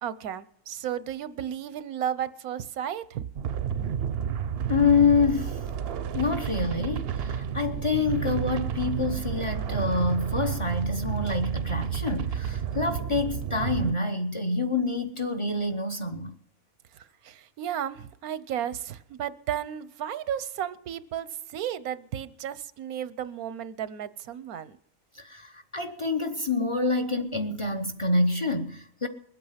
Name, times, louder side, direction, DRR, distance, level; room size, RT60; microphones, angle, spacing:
voice 1, 0.0-3.2 17.0-24.8, right 10 dB, 85° right, 1.3 m, -33 dB
sound 1, 3.4-13.9, right 8 dB, 55° right, 0.8 m, -30 dB
voice 2, 4.7-5.6 6.1-16.3 25.2-29.1, left 4 dB, 25° left, 0.8 m, -27 dB
21.5 x 8.7 x 5.8 m
omnidirectional pair, 1.5 m